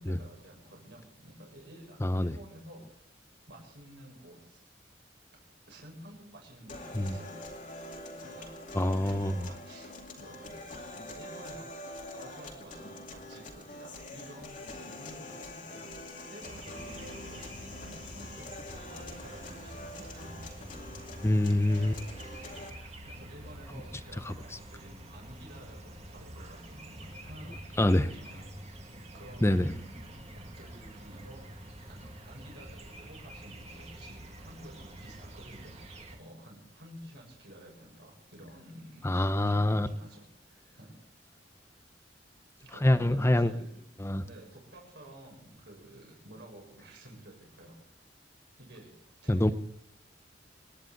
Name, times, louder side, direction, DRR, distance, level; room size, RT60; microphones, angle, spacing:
voice 1, 0.0-2.9 3.5-4.6 5.7-7.3 8.2-8.5 8.9-11.7 12.1-15.8 16.3-20.6 22.8-28.4 29.1-31.4 31.9-39.1 39.5-41.0 42.6-43.9 44.2-47.8 48.6-49.5, right 1 dB, 70° right, -1 dB, 7.0 m, -51 dB
voice 2, 2.0-2.3 6.9-7.2 8.7-9.5 21.2-22.0 24.3-24.4 27.8-28.1 29.4-29.7 39.0-39.9 42.8-43.5 44.0-44.2 49.3-49.5, left 1 dB, 15° left, 12 dB, 0.7 m, -25 dB
sound 1, 6.7-22.7, left 1 dB, 45° left, 2.4 m, -45 dB
sound 2, 16.4-36.2, right 1 dB, 35° right, 2.0 m, -47 dB
27.0 x 10.5 x 3.9 m, 0.69 s
head